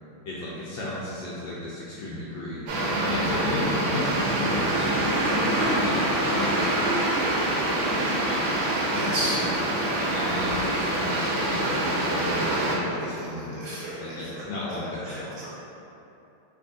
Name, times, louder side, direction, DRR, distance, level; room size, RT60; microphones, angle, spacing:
voice 1, 0.3-2.6 3.0-4.9 5.3-8.6 8.9-9.6 10.0-15.4, left 1 dB, 75° left, -7 dB, 1.2 m, -34 dB
sound 1, 2.7-12.8, right 1 dB, 75° right, 1.3 m, -25 dB
voice 2, 8.9-9.3 13.0-14.5 15.0-15.5, right 1 dB, 45° right, -9 dB, 1.2 m, -34 dB
3.5 x 2.6 x 3.7 m, 2.8 s
omnidirectional pair, 2.4 m